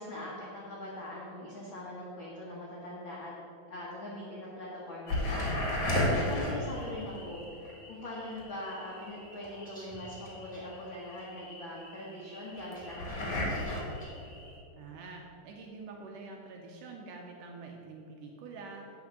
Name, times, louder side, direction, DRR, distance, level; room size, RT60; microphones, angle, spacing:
voice 1, 0.0-3.3 3.7-5.6 6.1-7.5 7.9-13.8, left 1 dB, 70° left, -5 dB, 1.1 m, -42 dB
sound 1, 5.1-14.6, left 1 dB, 45° left, 1.7 m, -35 dB
sound 2, 9.4-10.6 12.5-14.1, right 1 dB, 5° left, 1.4 m, -52 dB
voice 2, 14.8-19.0, right 3 dB, 80° right, 1 dB, 2.0 m, -46 dB
9.6 x 4.4 x 7.3 m, 2.6 s
omnidirectional pair, 4.3 m